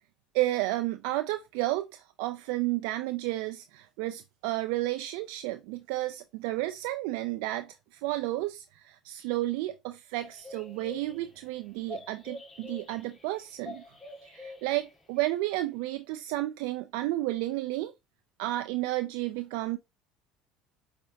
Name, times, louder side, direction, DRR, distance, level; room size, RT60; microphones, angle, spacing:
voice 1, 0.3-13.8 14.2-17.9 18.4-19.8, right 17 dB, 75° right, 0.4 m, -32 dB
sound 1, 10.2-15.2 15.5-15.7, left 2 dB, 25° left, 1.6 m, -46 dB
5.2 x 3.4 x 2.6 m
supercardioid pair, 90°, 0 cm